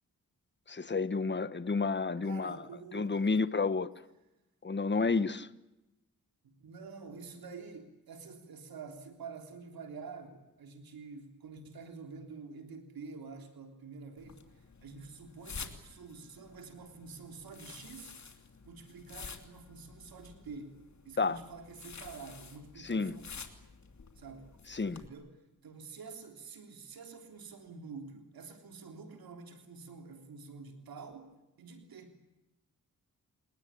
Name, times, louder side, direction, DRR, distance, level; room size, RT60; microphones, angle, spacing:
voice 1, 0.7-2.6 2.9-3.9 4.6-5.5 21.2-21.4 22.8-23.2 24.7-25.0, left 4 dB, 30° left, 1.3 m, -30 dB
voice 2, 2.2-3.4 6.4-18.1 18.7-20.8 21.0-23.3 24.2-24.5 24.8-25.3 25.6-32.2, right 4 dB, 90° right, 3.6 m, -48 dB
sound 1, 14.2-25.1, left 5 dB, 50° left, 3.0 m, -50 dB
29.5 x 19.0 x 8.8 m
cardioid pair, 75°, 35 cm